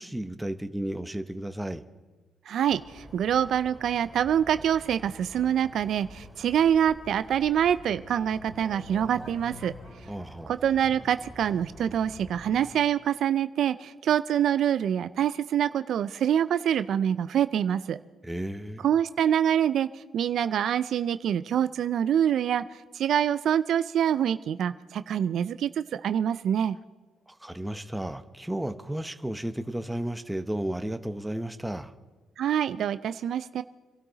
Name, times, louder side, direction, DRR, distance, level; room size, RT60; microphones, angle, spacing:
voice 1, 0.0-1.9 10.1-10.5 18.2-18.8 27.3-31.9, right 1 dB, 5° right, 9 dB, 0.9 m, -33 dB
voice 2, 2.5-9.7 10.5-18.0 18.8-19.9 20.1-22.6 22.9-26.8 32.4-33.6, right 9 dB, 70° right, 13 dB, 0.4 m, -25 dB
sound 1, 2.7-12.7, left 1 dB, 15° left, 3.7 m, -47 dB
26.5 x 12.5 x 4.0 m, 1.3 s
cardioid pair, 90°, 0 cm